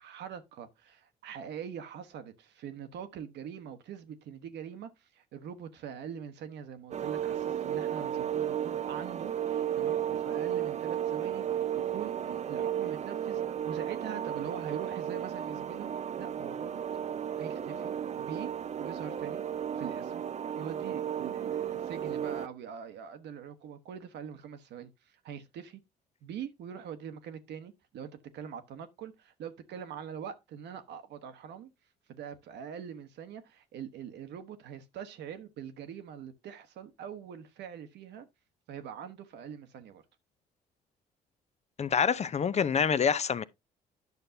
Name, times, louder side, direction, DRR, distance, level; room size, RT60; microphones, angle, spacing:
voice 1, 0.0-15.9 16.2-16.8 17.3-18.5 18.8-19.4 19.7-20.2 20.6-25.8 26.2-31.7 32.1-38.3 38.7-40.0, right 8 dB, 60° right, 1.1 m, -43 dB
sound 1, 6.9-22.5, right 9 dB, 35° right, 0.6 m, -34 dB
voice 2, 41.8-43.4, left 6 dB, 35° left, 0.6 m, -26 dB
10.5 x 6.5 x 2.7 m
hypercardioid pair, 50°, 20 cm